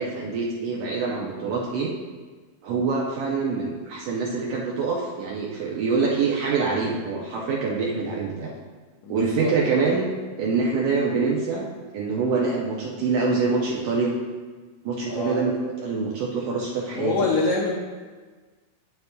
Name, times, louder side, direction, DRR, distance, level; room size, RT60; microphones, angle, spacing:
voice 1, 0.0-1.9 2.6-8.5 9.1-10.1 10.4-11.7 11.9-14.1 14.8-17.2, right 4 dB, 75° right, -2 dB, 1.5 m, -25 dB
voice 2, 9.0-9.9 15.1-15.4 16.9-17.7, left 3 dB, 70° left, -3 dB, 1.4 m, -26 dB
9.2 x 6.9 x 2.2 m, 1.4 s
omnidirectional pair, 3.4 m